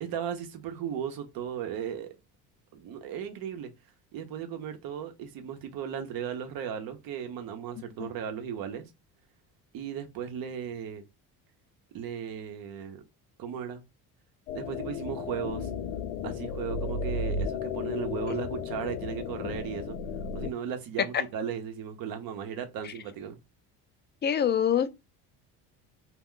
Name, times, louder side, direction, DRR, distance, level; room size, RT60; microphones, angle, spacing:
voice 1, 0.0-2.1 2.7-3.7 4.1-8.8 9.7-11.0 11.9-13.0 13.4-13.8 14.5-15.7 16.2-20.0 20.3-23.4, right 8 dB, 65° right, 0.8 m, -36 dB
sound 1, 14.5-20.5, left 5 dB, 90° left, 0.5 m, -34 dB
voice 2, 24.2-24.9, left 9 dB, 30° left, 0.4 m, -25 dB
2.2 x 2.2 x 3.7 m
supercardioid pair, 90°, 37 cm